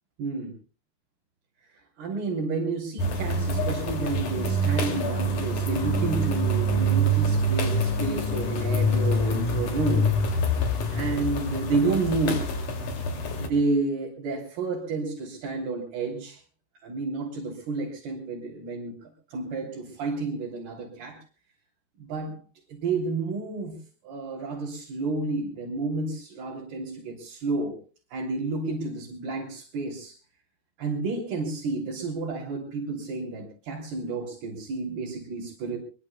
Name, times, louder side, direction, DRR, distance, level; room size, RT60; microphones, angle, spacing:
voice 1, 0.2-0.5 1.7-10.1 10.4-10.6 10.9-12.5 13.4-16.4 16.8-21.2 22.0-22.4 22.7-23.8 24.0-27.8 28.1-30.2 30.8-35.8, right 3 dB, 70° right, -4 dB, 5.3 m, -30 dB
sound 1, 3.0-13.5, equal, 55° left, 3.9 m, -26 dB
24.0 x 23.0 x 2.3 m, 0.34 s
omnidirectional pair, 4.6 m